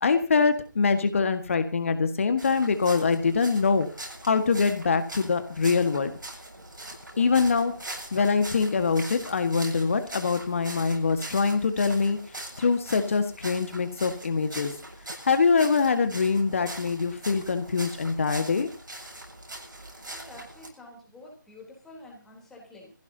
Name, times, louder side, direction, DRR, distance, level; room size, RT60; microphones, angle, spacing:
voice 1, 0.0-3.9 4.2-6.1 7.2-7.7 8.1-12.2 12.6-14.7 15.2-18.7, left 5 dB, 40° left, 8 dB, 1.6 m, -24 dB
sound 1, 2.4-20.7, right 1 dB, 75° right, 8.0 m, -42 dB
voice 2, 20.1-22.9, left 1 dB, 5° left, -2 dB, 3.5 m, -48 dB
24.0 x 15.5 x 2.8 m, 0.33 s
figure-of-eight pair, 160°, 11 cm